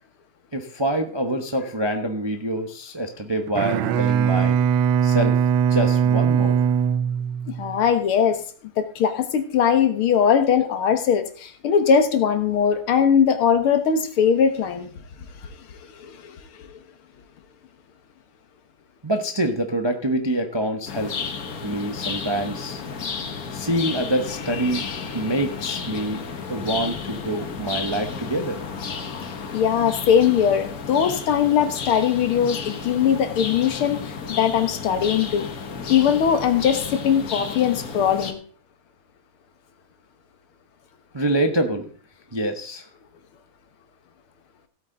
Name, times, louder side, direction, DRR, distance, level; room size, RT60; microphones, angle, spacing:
voice 1, 0.5-4.6 5.0-5.4 5.7-6.6 8.2-8.3 19.0-21.4 21.6-22.8 23.5-24.8 25.1-26.2 26.5-28.6 41.1-41.9 42.3-42.9, right 1 dB, 30° right, 5 dB, 0.4 m, -26 dB
Bowed string instrument, 3.5-7.8, right 8 dB, 80° right, 1.5 m, -20 dB
voice 2, 7.6-8.4 8.8-14.9 16.0-16.3 29.5-35.5 35.9-38.4, left 7 dB, 85° left, 8 dB, 2.1 m, -20 dB
sound 1, 20.9-38.3, left 5 dB, 50° left, 1.5 m, -33 dB
16.5 x 8.5 x 3.9 m, 0.43 s
omnidirectional pair, 2.3 m